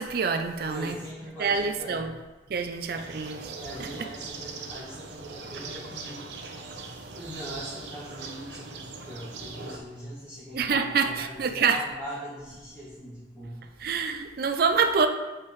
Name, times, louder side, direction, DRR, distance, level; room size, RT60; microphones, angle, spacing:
voice 1, 0.0-1.0 1.4-2.1 2.5-3.5 3.8-3.9 10.5-11.8 13.8-15.1, right 5 dB, 60° right, 6 dB, 0.5 m, -26 dB
voice 2, 0.7-2.1 3.6-6.3 7.2-13.7, equal, 15° left, -12 dB, 1.8 m, -41 dB
sound 1, 2.9-9.8, right 4 dB, 85° right, 0.8 m, -41 dB
6.6 x 5.8 x 3.2 m, 1.2 s
head